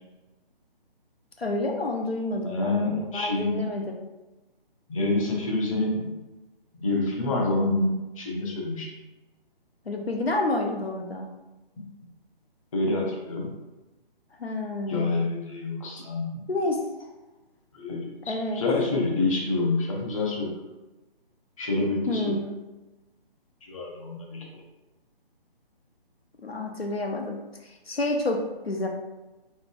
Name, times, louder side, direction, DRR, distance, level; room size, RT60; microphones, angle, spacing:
voice 1, 1.4-2.8 3.1-4.0 9.9-11.3 14.4-15.2 16.5-16.9 18.3-18.6 22.1-22.6 26.4-28.9, left 2 dB, 85° left, 2 dB, 0.8 m, -29 dB
voice 2, 2.4-3.6 4.9-6.1 6.8-8.9 11.8-11.9 12.7-13.5 14.9-16.4 17.7-20.6 21.6-22.3 23.7-24.4, left 2 dB, 35° left, -2 dB, 1.1 m, -27 dB
5.3 x 3.9 x 2.5 m, 1.1 s
figure-of-eight pair, 140°, 30 cm